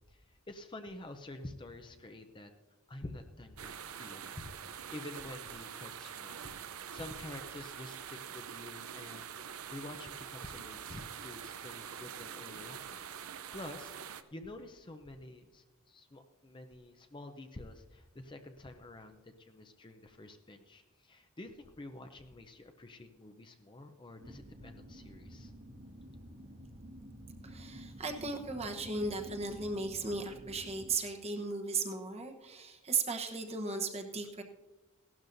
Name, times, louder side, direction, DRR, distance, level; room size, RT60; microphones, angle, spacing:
voice 1, 0.1-2.5 2.9-6.4 6.7-9.3 9.7-13.0 13.5-25.5, left 2 dB, 20° left, 6 dB, 0.6 m, -48 dB
sound 1, 3.6-14.2, right 8 dB, 80° right, 0.6 m, -45 dB
sound 2, 24.2-30.9, equal, 45° right, 1.5 m, -50 dB
voice 2, 27.4-34.4, right 4 dB, 30° right, 4 dB, 1.0 m, -36 dB
17.0 x 12.0 x 2.6 m, 1.2 s
head